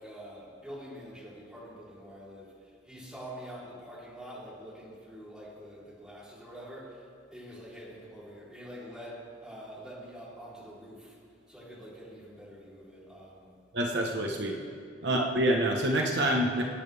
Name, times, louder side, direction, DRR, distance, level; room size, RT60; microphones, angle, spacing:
voice 1, 0.0-11.2 11.5-13.5 15.0-15.3, equal, 5° right, -8 dB, 3.5 m, -46 dB
voice 2, 13.7-14.6 15.0-16.6, right 1 dB, 65° right, 1 dB, 1.1 m, -27 dB
23.5 x 8.9 x 3.4 m, 2.2 s
head